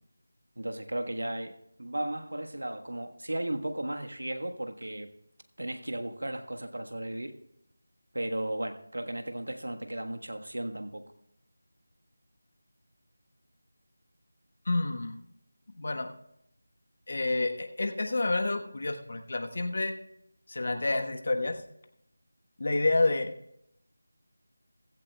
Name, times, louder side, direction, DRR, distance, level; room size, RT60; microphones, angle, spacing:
voice 1, 0.6-5.1 5.6-7.3 8.1-11.1, right 1 dB, 85° right, 6 dB, 1.3 m, -35 dB
voice 2, 14.7-15.2 15.8-16.1 17.1-19.9 20.5-21.5 22.6-23.3, left 2 dB, 55° left, 6 dB, 1.2 m, -29 dB
15.5 x 15.0 x 2.3 m, 0.78 s
figure-of-eight pair, 170°, 0 cm